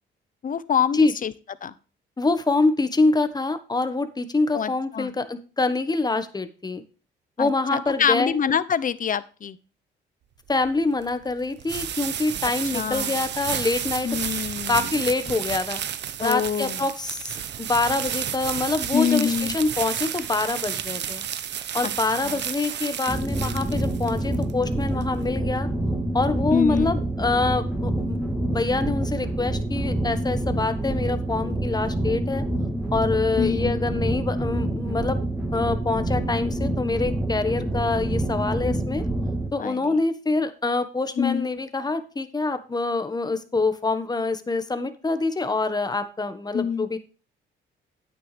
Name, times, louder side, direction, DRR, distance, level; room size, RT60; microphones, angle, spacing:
voice 1, 0.4-1.3 1.6-1.7 4.5-5.1 7.4-9.6 12.7-13.2 14.0-14.9 16.2-16.9 18.9-19.6 21.8-21.9 22.2-22.4 26.5-26.9 33.4-33.8 39.6-40.0 41.2-41.5 46.5-46.9, left 8 dB, 40° left, 16 dB, 0.8 m, -25 dB
voice 2, 2.2-6.8 7.4-8.4 10.5-14.2 14.7-15.8 16.2-21.2 21.7-25.7 26.1-28.2 28.5-32.4 32.9-35.2 35.5-39.0 39.5-47.0, left 3 dB, 20° left, 10 dB, 1.4 m, -25 dB
sound 1, 10.5-25.4, right 9 dB, 60° right, 1.0 m, -32 dB
sound 2, 23.1-39.5, right 1 dB, 5° right, 2.9 m, -27 dB
9.8 x 9.1 x 3.3 m, 0.36 s
cardioid pair, 90°, 20 cm